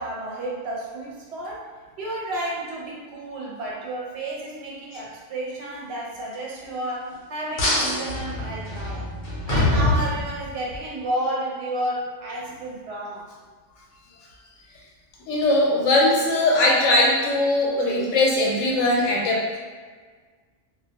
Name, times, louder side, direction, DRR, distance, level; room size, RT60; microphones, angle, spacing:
voice 1, 0.0-1.7 2.0-9.1 9.5-13.3, right 1 dB, 65° right, -3 dB, 0.8 m, -31 dB
sound 1, 7.6-10.8, left 1 dB, 50° left, 0.7 m, -24 dB
voice 2, 15.3-19.6, left 2 dB, 85° left, -2 dB, 0.9 m, -20 dB
2.3 x 2.1 x 2.7 m, 1.5 s
omnidirectional pair, 1.3 m